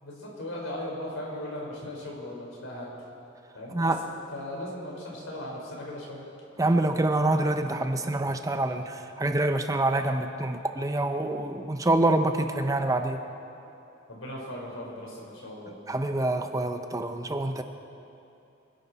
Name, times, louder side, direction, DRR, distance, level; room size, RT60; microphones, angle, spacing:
voice 1, 0.0-3.0 3.5-3.9 4.3-6.2 14.1-15.8, left 1 dB, 90° left, -2 dB, 4.2 m, -38 dB
voice 2, 6.6-13.2 15.9-17.6, right 2 dB, 15° right, 7 dB, 0.6 m, -26 dB
25.0 x 11.0 x 4.1 m, 2.9 s
head